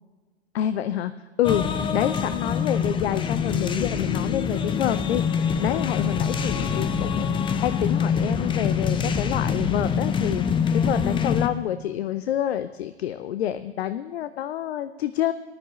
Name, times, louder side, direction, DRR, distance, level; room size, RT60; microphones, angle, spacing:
voice 1, 0.5-1.1 1.4-7.3 7.6-15.3, left 11 dB, 65° left, 13 dB, 0.6 m, -28 dB
sound 1, 1.4-11.5, left 6 dB, 15° left, 0.6 m, -25 dB
18.5 x 12.0 x 3.1 m, 1.3 s
figure-of-eight pair, 100°, 33 cm